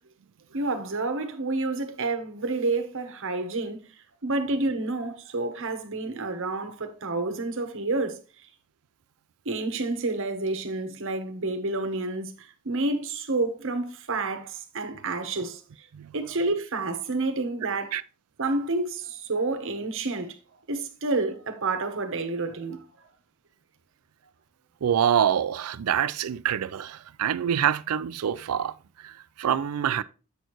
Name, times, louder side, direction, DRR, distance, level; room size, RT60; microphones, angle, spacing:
voice 1, 0.5-3.9 4.2-8.5 9.4-15.9 16.1-17.9 18.4-20.4 20.7-22.8, right 3 dB, 60° right, 1.1 m, -29 dB
voice 2, 24.8-30.0, right 9 dB, 80° right, 0.4 m, -26 dB
7.9 x 6.3 x 3.0 m
head